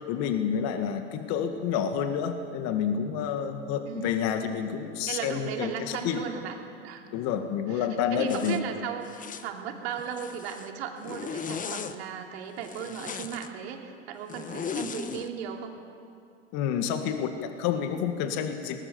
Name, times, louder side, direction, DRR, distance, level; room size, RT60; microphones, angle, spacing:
voice 1, 0.1-6.2 7.1-8.6 16.5-18.8, left 8 dB, 55° left, 7 dB, 1.9 m, -29 dB
voice 2, 3.9-4.4 5.1-6.6 6.8-7.0 7.7-9.1 9.4-15.7, right 8 dB, 70° right, 3 dB, 3.0 m, -36 dB
Zipper (clothing), 8.3-8.6 9.1-9.5 10.0-10.7 11.0-12.0 12.6-13.5 14.3-15.3, left 6 dB, 25° left, 1.2 m, -37 dB
20.5 x 19.5 x 7.2 m, 2.4 s
hypercardioid pair, 95°, 33 cm